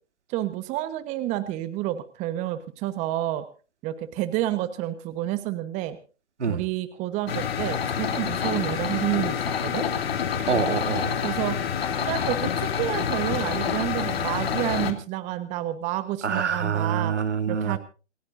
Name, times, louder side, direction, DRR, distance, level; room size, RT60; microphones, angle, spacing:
voice 1, 0.3-3.5 3.8-6.0 6.5-9.9 11.2-11.6 12.0-17.1 17.5-17.8, right 14 dB, 20° right, 12 dB, 1.2 m, -29 dB
sound 1, 7.3-14.9, left 8 dB, 55° left, 3.1 m, -27 dB
voice 2, 10.5-11.2 16.2-17.8, right 6 dB, 75° right, 8 dB, 2.8 m, -26 dB
28.0 x 15.0 x 2.6 m, 0.35 s
hypercardioid pair, 135°, 35 cm